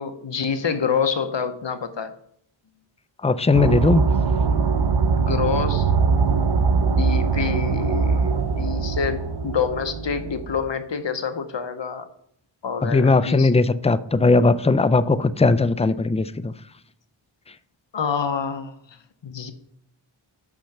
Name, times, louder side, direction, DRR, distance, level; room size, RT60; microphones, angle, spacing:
voice 1, 0.0-2.1 5.2-5.9 6.8-12.1 12.6-13.5 17.9-18.7 19.2-19.5, left 6 dB, 60° left, 10 dB, 0.8 m, -27 dB
voice 2, 3.2-4.0 12.8-16.5, left 3 dB, 15° left, 14 dB, 0.3 m, -18 dB
sound 1, 3.5-10.7, right 5 dB, 55° right, 0.7 m, -22 dB
6.2 x 5.7 x 6.5 m, 0.69 s
wide cardioid pair, 50°, 49 cm